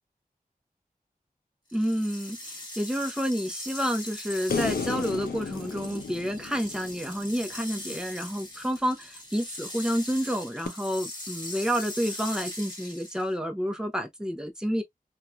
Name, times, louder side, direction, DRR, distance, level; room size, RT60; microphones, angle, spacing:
sound 1, 1.7-13.3, left 1 dB, 30° left, 1.5 m, -41 dB
voice 1, 1.7-14.8, equal, 5° right, 0.8 m, -29 dB
sound 2, 4.5-7.8 10.7-10.8, left 5 dB, 85° left, 0.6 m, -33 dB
2.9 x 2.5 x 2.2 m
wide cardioid pair, 65°, 15 cm